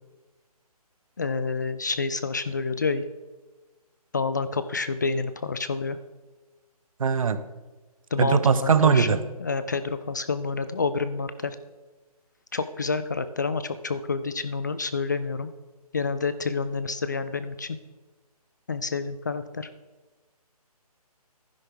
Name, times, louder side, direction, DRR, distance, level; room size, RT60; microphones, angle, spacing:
voice 1, 1.2-3.0 4.1-6.0 8.1-11.6 12.5-15.5 15.9-17.8 18.7-19.7, left 4 dB, 30° left, 12 dB, 0.3 m, -28 dB
voice 2, 7.0-7.4 8.2-9.2, right 6 dB, 60° right, 12 dB, 0.9 m, -20 dB
11.0 x 10.5 x 3.7 m, 1.2 s
hypercardioid pair, 160°, 20 cm